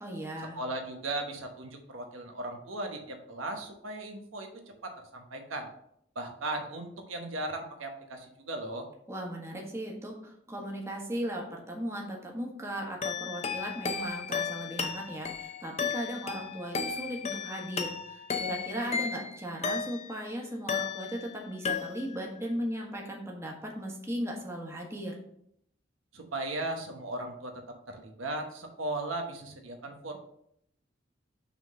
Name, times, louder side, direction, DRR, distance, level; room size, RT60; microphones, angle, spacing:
voice 1, 0.0-0.6 9.1-25.1, equal, 15° right, -1 dB, 1.3 m, -37 dB
voice 2, 0.5-4.5 4.8-5.7 6.1-8.9 26.1-27.5 27.9-30.2, right 2 dB, 85° right, 4 dB, 1.0 m, -37 dB
sound 1, 13.0-20.3 20.7-21.4 21.6-22.3, left 6 dB, 35° left, 0.6 m, -34 dB
6.0 x 3.8 x 6.2 m, 0.72 s
head